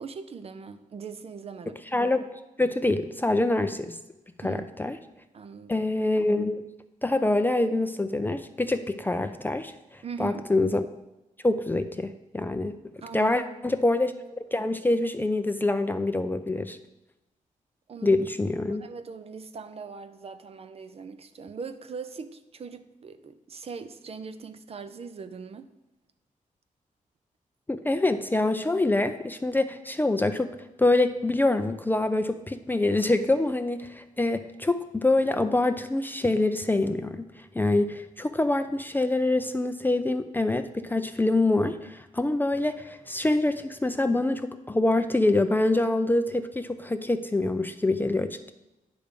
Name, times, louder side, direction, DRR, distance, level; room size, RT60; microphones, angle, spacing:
voice 1, 0.0-1.8 4.4-4.7 5.3-5.8 10.0-10.4 13.0-13.4 17.9-18.2 18.7-25.7, right 5 dB, 45° right, 10 dB, 0.5 m, -40 dB
voice 2, 1.9-2.3 2.6-4.0 4.4-5.0 5.7-6.6 7.0-10.9 11.4-12.8 13.1-14.1 14.5-16.8 18.0-18.9 27.7-30.5 30.8-48.5, left 2 dB, 15° left, 9 dB, 0.4 m, -25 dB
10.0 x 3.4 x 5.1 m, 0.98 s
cardioid pair, 105°, 14 cm